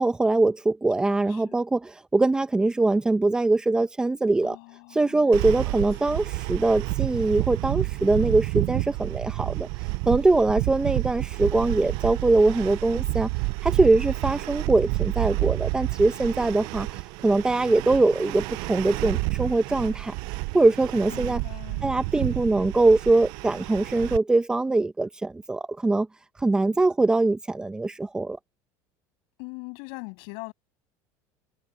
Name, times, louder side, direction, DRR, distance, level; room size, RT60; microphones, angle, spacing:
voice 1, 0.0-4.6 4.9-9.7 10.1-13.3 13.6-16.9 17.2-20.1 20.5-21.4 21.8-26.1 26.4-28.4, right 2 dB, 10° right, 1.1 m, -22 dB
voice 2, 1.0-1.6 4.4-6.3 21.1-21.9 29.4-30.5, left 35 dB, 75° left, 8.0 m, -42 dB
sound 1, 5.3-24.2, right 24 dB, 65° right, 0.6 m, -30 dB
cardioid pair, 145°, 8 cm